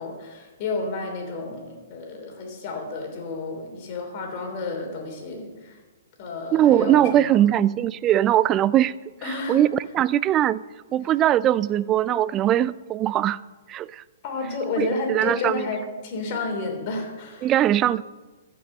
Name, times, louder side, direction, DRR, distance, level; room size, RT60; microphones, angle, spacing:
voice 1, 0.0-5.8 6.2-7.4 9.2-9.6 14.2-17.8, left 3 dB, 45° left, 3 dB, 3.2 m, -31 dB
voice 2, 6.5-8.9 9.3-10.6 10.9-13.4 13.7-14.0 14.8-15.6 17.4-18.0, right 12 dB, 25° right, 19 dB, 0.3 m, -21 dB
14.5 x 6.1 x 6.6 m, 1.3 s
hypercardioid pair, 125°, 0 cm